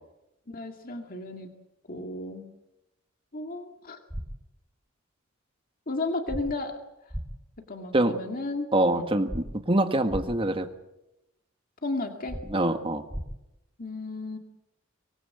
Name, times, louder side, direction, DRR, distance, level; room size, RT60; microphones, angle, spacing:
voice 1, 0.5-1.5 1.9-2.5 3.3-4.0 5.9-6.8 7.7-9.1 11.8-12.4 13.8-14.4, left 2 dB, 45° left, 4 dB, 2.1 m, -33 dB
sound 1, 4.1-4.3 6.3-6.4 7.1-7.2 9.3-9.4 10.1-10.2 12.3-12.4 13.1-13.2, equal, 10° right, 2.4 m, -33 dB
voice 2, 8.7-10.7 12.5-13.0, right 1 dB, 25° right, 7 dB, 1.7 m, -24 dB
24.5 x 20.0 x 7.9 m, 0.92 s
head